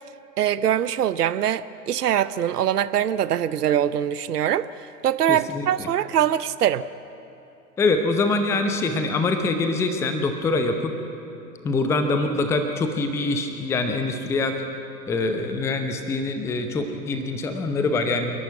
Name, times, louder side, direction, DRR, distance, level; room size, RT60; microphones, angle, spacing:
voice 1, 0.4-6.9, right 10 dB, 70° right, 15 dB, 0.7 m, -23 dB
voice 2, 5.3-5.9 7.8-10.9 11.6-14.6 15.1-18.3, left 3 dB, 5° left, 7 dB, 0.7 m, -24 dB
28.0 x 11.5 x 9.2 m, 2.8 s
figure-of-eight pair, 110°, 49 cm